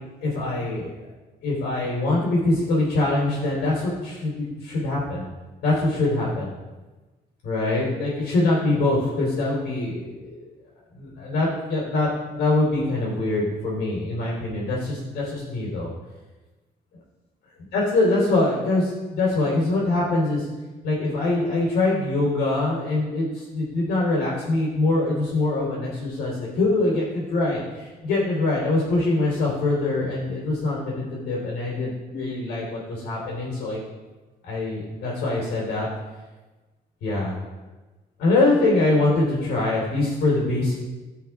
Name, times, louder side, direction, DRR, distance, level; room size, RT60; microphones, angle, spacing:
voice 1, 0.2-0.9 1.4-5.2 5.6-6.5 7.4-10.5 10.9-15.9 17.7-20.5 20.8-33.8 34.4-35.9 37.0-37.4 38.2-40.7, left 2 dB, 90° left, -4 dB, 3.5 m, -23 dB
15.0 x 5.7 x 3.6 m, 1.2 s
cardioid pair, 90°, 16 cm